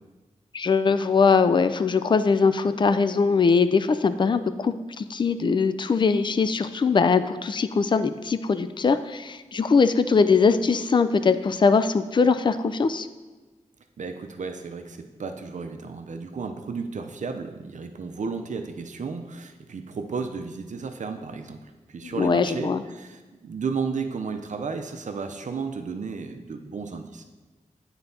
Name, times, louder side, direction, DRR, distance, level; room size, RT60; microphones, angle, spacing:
voice 1, 0.5-13.1 22.2-22.8, left 5 dB, 35° left, 12 dB, 0.3 m, -21 dB
voice 2, 14.0-27.2, right 5 dB, 65° right, 6 dB, 0.6 m, -33 dB
9.0 x 3.9 x 2.7 m, 1.2 s
cardioid pair, 50°, 14 cm